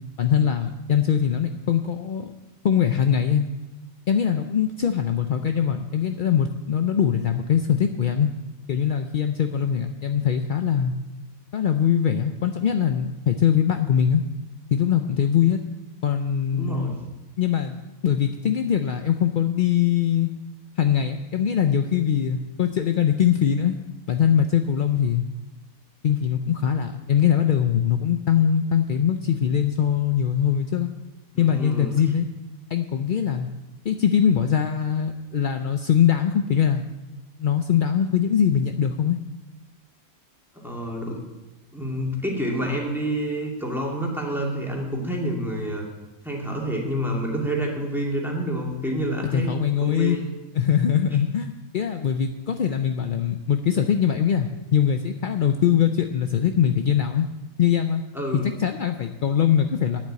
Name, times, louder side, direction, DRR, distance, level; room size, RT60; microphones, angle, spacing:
voice 1, 0.2-2.3 2.6-3.5 4.1-8.3 8.7-10.9 11.5-14.2 14.7-15.6 16.0-16.9 17.4-17.8 18.0-20.3 20.8-23.8 24.1-25.2 26.0-30.9 31.4-32.3 32.7-33.5 33.8-36.8 37.4-39.2 49.3-50.2 50.5-57.3 57.6-58.0 58.3-60.0, left 8 dB, 60° left, 6 dB, 0.5 m, -22 dB
voice 2, 16.5-17.0 31.3-31.9 40.5-41.2 41.7-45.8 46.2-49.5 49.8-50.2 58.1-58.5, equal, ahead, -2 dB, 2.3 m, -28 dB
9.5 x 7.5 x 8.7 m, 1.1 s
omnidirectional pair, 1.5 m